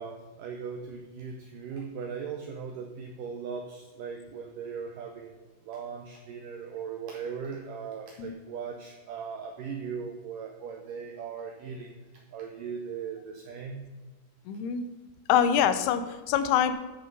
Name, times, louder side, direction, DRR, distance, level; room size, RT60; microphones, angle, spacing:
voice 1, 0.0-13.8, right 6 dB, 85° right, 4 dB, 1.9 m, -39 dB
voice 2, 14.5-14.8 15.3-16.7, left 9 dB, 80° left, 11 dB, 2.6 m, -24 dB
13.0 x 5.4 x 5.4 m, 1.2 s
omnidirectional pair, 4.9 m